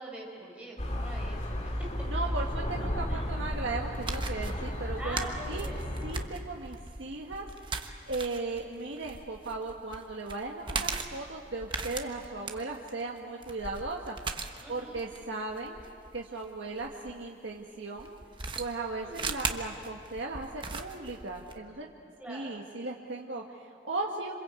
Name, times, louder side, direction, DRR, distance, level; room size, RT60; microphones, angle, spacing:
voice 1, 0.0-2.1 3.1-3.3 5.0-5.9 14.6-15.0 19.0-19.2 22.2-22.6, right 1 dB, 5° right, -3 dB, 5.5 m, -43 dB
sound 1, 0.8-6.3, equal, 35° left, 2.1 m, -34 dB
voice 2, 2.1-5.7 6.0-7.5 8.1-14.1 14.7-15.8 16.1-18.1 18.6-21.9 22.3-24.3, right 3 dB, 75° right, -1 dB, 1.7 m, -37 dB
sound 2, 3.9-17.1 18.0-21.6, right 4 dB, 25° right, 1.1 m, -38 dB
27.0 x 26.5 x 8.3 m, 2.3 s
head